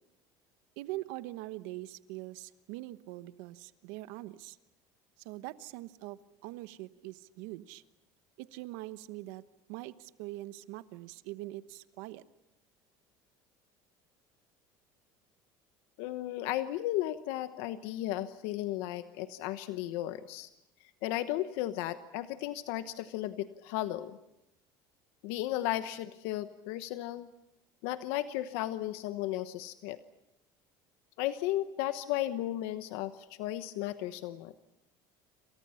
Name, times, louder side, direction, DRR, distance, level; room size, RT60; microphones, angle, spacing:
voice 1, 0.8-4.6 5.2-7.8 8.4-9.4 9.7-12.2, right 17 dB, 80° right, 13 dB, 1.1 m, -43 dB
voice 2, 16.0-20.5 21.0-24.2 25.2-27.3 27.8-30.0 31.2-34.6, left 14 dB, 80° left, 11 dB, 1.1 m, -35 dB
28.0 x 27.0 x 5.7 m, 0.86 s
cardioid pair, 125°, 10 cm